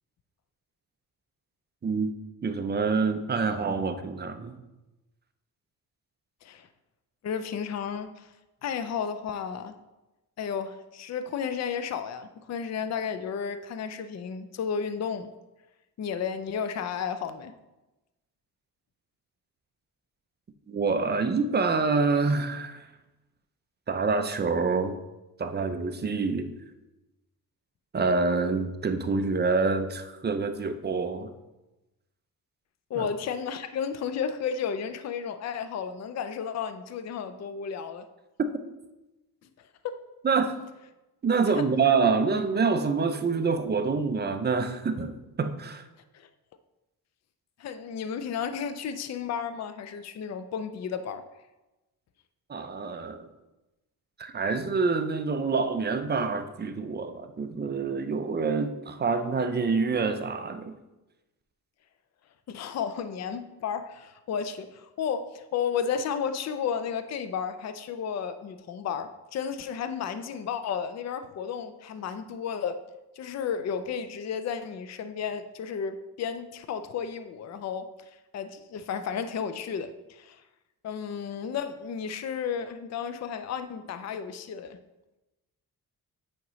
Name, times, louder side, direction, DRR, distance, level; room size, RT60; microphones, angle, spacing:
voice 1, 1.8-2.1 2.4-4.6 20.7-22.9 23.9-25.0 25.4-26.5 27.9-31.3 33.0-33.1 40.2-40.5 41.2-45.8 52.5-53.3 54.2-60.7, right 4 dB, 25° right, 8 dB, 0.5 m, -26 dB
voice 2, 7.2-8.3 8.6-9.7 10.4-15.3 16.0-17.5 32.9-38.1 39.8-40.0 41.6-41.7 46.1-46.3 47.6-51.2 62.5-72.8 73.2-77.9 78.3-80.4 80.8-84.8, left 7 dB, 45° left, 10 dB, 0.5 m, -33 dB
8.6 x 5.1 x 3.1 m, 1.0 s
wide cardioid pair, 125°, 37 cm